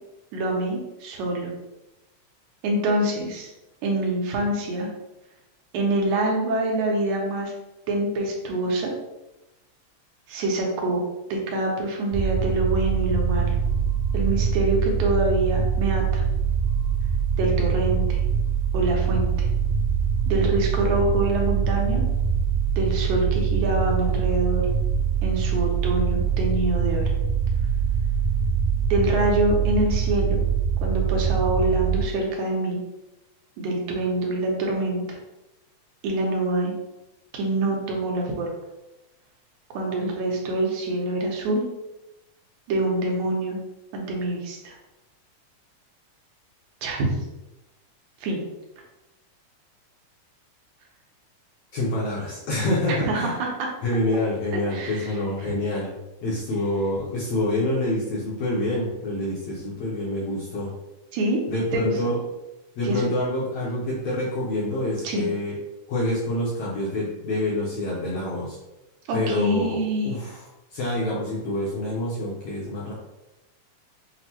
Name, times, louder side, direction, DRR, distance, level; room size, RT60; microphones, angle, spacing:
voice 1, 0.3-1.5 2.6-3.5 3.8-4.9 5.7-7.5 7.9-8.9 10.3-11.0 11.3-13.5 14.1-16.2 17.4-18.2 18.7-19.5 20.3-22.0 22.8-24.7 25.2-27.1 28.9-30.4 30.8-32.8 33.6-35.2 36.0-36.7 37.3-38.5 39.7-41.6 42.7-43.6 43.9-44.8 46.8-47.1 48.2-48.4 52.9-53.7 54.5-55.1 55.4-55.5 61.1-61.4 61.7-62.1 62.8-63.1 65.0-65.3 69.1-70.2, right 2 dB, 80° right, 0 dB, 2.1 m, -25 dB
sound 1, 12.1-32.0, right 7 dB, 55° right, 1.2 m, -23 dB
voice 2, 51.7-53.3 53.8-56.0 56.2-60.7 61.5-62.2 62.8-65.5 65.9-68.6 69.1-69.8 70.0-70.4 70.7-72.9, left 1 dB, 75° left, -5 dB, 1.5 m, -27 dB
6.0 x 2.1 x 2.8 m, 0.96 s
omnidirectional pair, 3.5 m